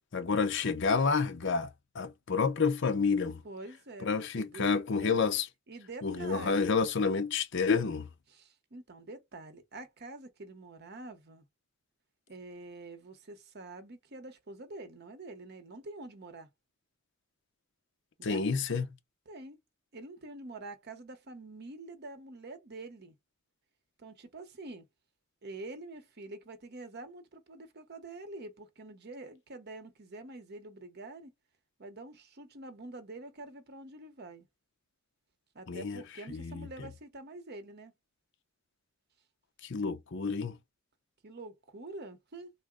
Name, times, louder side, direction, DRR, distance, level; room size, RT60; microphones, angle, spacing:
voice 1, 0.1-1.7 1.9-3.4 4.0-5.5 6.0-8.1 18.2-18.9 35.7-36.0 36.3-36.7 39.6-40.6, left 5 dB, 60° left, 0.6 m, -29 dB
voice 2, 3.4-5.2 5.7-6.7 8.3-11.4 12.3-16.5 18.2-18.4 19.3-19.6 19.9-23.1 24.0-24.9 25.4-31.3 31.8-34.5 35.5-37.9 41.2-42.5, right 2 dB, 50° right, 0.8 m, -46 dB
3.7 x 2.1 x 3.6 m
head